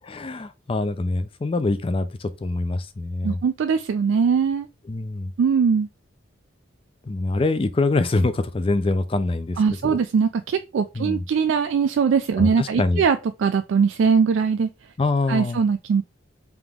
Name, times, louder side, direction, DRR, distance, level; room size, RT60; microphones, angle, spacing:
voice 1, 0.1-3.4 4.9-5.3 7.1-10.0 11.0-11.2 12.4-13.0 15.0-15.6, left 2 dB, 30° left, 0.4 m, -24 dB
voice 2, 3.2-4.7 5.4-5.9 9.6-14.7 15.3-16.0, right 6 dB, 75° right, 0.3 m, -21 dB
3.5 x 2.9 x 3.5 m
head